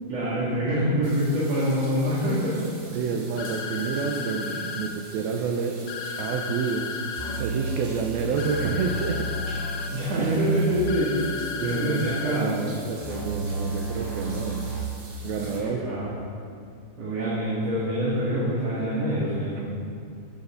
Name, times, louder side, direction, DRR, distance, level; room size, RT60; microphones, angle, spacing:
voice 1, 0.1-2.6 4.4-4.7 9.9-11.2 11.6-12.5 15.3-16.1 17.0-19.6, equal, 45° right, -8 dB, 2.9 m, -26 dB
sound 1, 1.0-15.6, right 3 dB, 60° right, 3.9 m, -46 dB
voice 2, 2.9-4.5 4.8-5.8 6.2-6.9 7.4-9.3 10.2-10.4 11.6-14.6 15.2-16.3, right 5 dB, 80° right, 2 dB, 2.3 m, -29 dB
sound 2, 3.4-4.9 5.9-7.4 8.4-9.9 10.9-12.4, left 5 dB, 85° left, 1.9 m, -34 dB
sound 3, 7.2-14.8, right 3 dB, 20° left, 0.5 m, -33 dB
16.0 x 11.5 x 3.9 m, 2.3 s
omnidirectional pair, 5.0 m